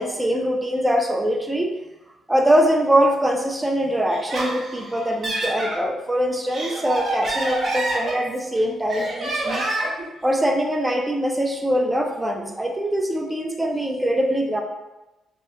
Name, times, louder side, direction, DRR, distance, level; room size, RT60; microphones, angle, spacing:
voice 1, 0.0-1.7 2.3-9.7 10.2-14.6, equal, 10° right, 2 dB, 0.4 m, -22 dB
Laughter, 4.1-5.8 6.3-8.5 8.9-10.0, right 2 dB, 50° right, 0.6 m, -27 dB
2.7 x 2.1 x 2.2 m, 1.0 s
cardioid pair, 90°, 0 cm